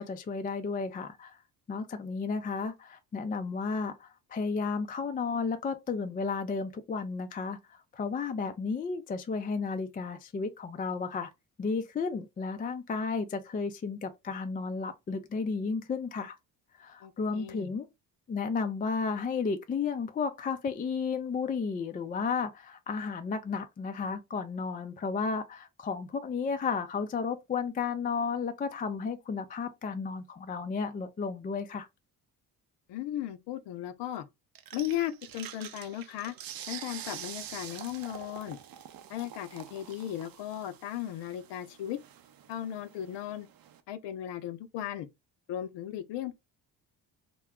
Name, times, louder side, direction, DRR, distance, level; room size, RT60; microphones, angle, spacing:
voice 1, 0.0-1.4 1.7-11.3 11.6-16.4 16.8-17.9 18.3-31.9, left 5 dB, 20° left, 0.3 m, -33 dB
voice 2, 17.0-17.7 32.9-34.3 34.7-36.3 36.7-38.6 39.1-42.0 42.5-43.5 43.9-45.1 45.5-46.3, left 11 dB, 65° left, 0.6 m, -36 dB
sound 1, 34.6-43.8, right 10 dB, 50° right, 0.6 m, -46 dB
2.3 x 2.2 x 3.5 m
supercardioid pair, 60°, 46 cm